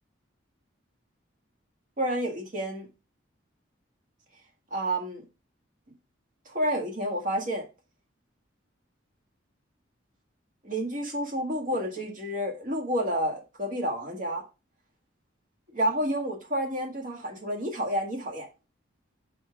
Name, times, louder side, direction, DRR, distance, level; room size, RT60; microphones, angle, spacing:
voice 1, 2.0-2.9 4.7-5.2 6.5-7.7 10.6-14.4 15.7-18.5, equal, 45° right, 1.8 m, -30 dB
6.2 x 5.9 x 3.5 m
head